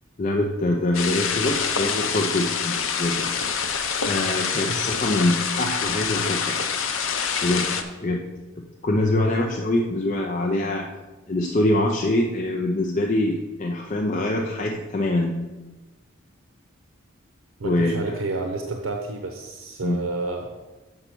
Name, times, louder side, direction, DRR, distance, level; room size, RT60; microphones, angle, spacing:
voice 1, 0.2-3.3 4.0-6.6 7.4-7.6 8.0-8.2 8.8-10.8 11.3-15.4 17.6-18.1 19.8-20.0, left 1 dB, 40° left, 0 dB, 0.6 m, -24 dB
sound 1, 0.9-7.8, left 6 dB, 75° left, 0.7 m, -26 dB
voice 2, 17.6-20.6, right 3 dB, 80° right, 3 dB, 0.7 m, -30 dB
6.8 x 5.5 x 6.1 m, 1.1 s
head